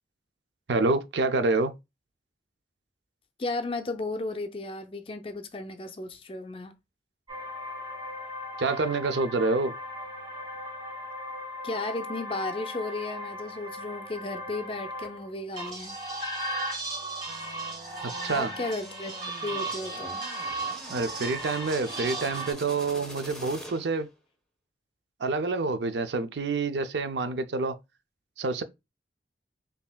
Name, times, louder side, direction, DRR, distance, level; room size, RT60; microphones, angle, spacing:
voice 1, 0.7-1.7 8.6-9.7 18.0-18.5 20.9-24.1 25.2-27.8 28.4-28.6, right 3 dB, 80° right, 0.5 m, -27 dB
voice 2, 3.4-6.7 11.6-16.0 18.3-19.1 19.4-20.2, left 2 dB, 30° left, 0.5 m, -34 dB
sound 1, 7.3-15.3 15.6-22.5, right 1 dB, 25° right, 2.1 m, -36 dB
sound 2, 17.3-24.1, equal, 5° left, 1.1 m, -45 dB
5.5 x 2.7 x 2.3 m
head